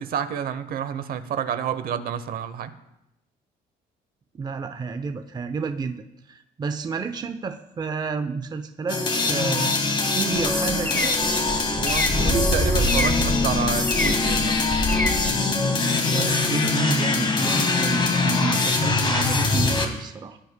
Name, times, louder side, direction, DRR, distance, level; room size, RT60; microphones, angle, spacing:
voice 1, 0.0-2.7 11.8-14.6, right 8 dB, 60° right, 11 dB, 0.8 m, -29 dB
voice 2, 4.3-6.0 6.3-9.0 9.3-9.7 10.1-11.2 15.8-20.4, right 5 dB, 25° right, 8 dB, 0.6 m, -30 dB
sound 1, 8.9-19.9, left 3 dB, 30° left, 1.6 m, -23 dB
sound 2, 10.3-15.3, left 1 dB, 10° left, 1.2 m, -26 dB
17.0 x 9.4 x 2.2 m, 0.88 s
cardioid pair, 110°, 17 cm